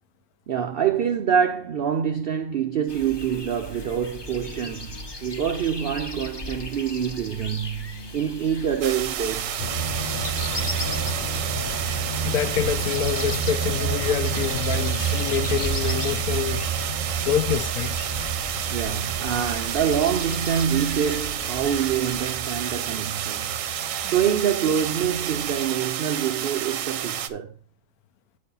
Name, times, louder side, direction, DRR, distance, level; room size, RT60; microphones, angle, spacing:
voice 1, 0.5-9.6 18.7-23.6 24.1-27.5, right 8 dB, 85° right, 0.5 m, -26 dB
sound 1, 2.9-22.2, left 2 dB, 25° left, 0.5 m, -38 dB
sound 2, 8.8-27.3, right 10 dB, 65° right, 0.9 m, -30 dB
sound 3, 9.6-25.7, right 4 dB, 55° left, 1.5 m, -31 dB
voice 2, 12.2-16.7 17.2-18.1, left 10 dB, 75° left, 1.1 m, -26 dB
9.4 x 4.2 x 5.4 m
omnidirectional pair, 1.6 m